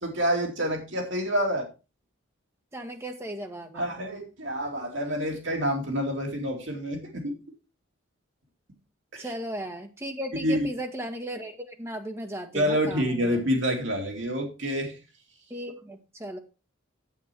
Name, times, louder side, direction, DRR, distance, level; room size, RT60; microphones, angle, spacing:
voice 1, 0.0-1.7 3.7-7.3 9.1-9.3 10.3-10.7 12.5-14.9, equal, 65° right, 1 dB, 2.7 m, -27 dB
voice 2, 2.7-3.9 9.2-13.4 15.5-16.4, right 1 dB, 15° right, 4 dB, 1.5 m, -36 dB
8.4 x 8.4 x 4.5 m, 0.31 s
head